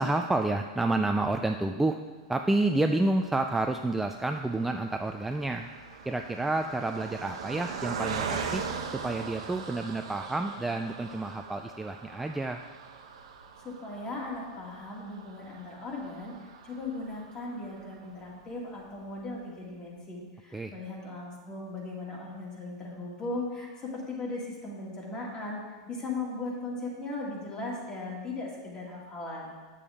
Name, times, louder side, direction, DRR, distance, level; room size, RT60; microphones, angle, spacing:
voice 1, 0.0-2.0 2.3-5.7 6.1-8.6 8.9-12.6 20.5-20.7, right 2 dB, 5° right, 4 dB, 0.3 m, -29 dB
Car passing by, 2.8-18.3 18.8-18.9 19.1-19.3, right 6 dB, 80° right, 0.9 m, -41 dB
voice 2, 13.6-16.3 16.7-29.5, left 2 dB, 30° left, -3 dB, 2.1 m, -38 dB
8.5 x 6.8 x 3.6 m, 1.4 s
hypercardioid pair, 120°, 3 cm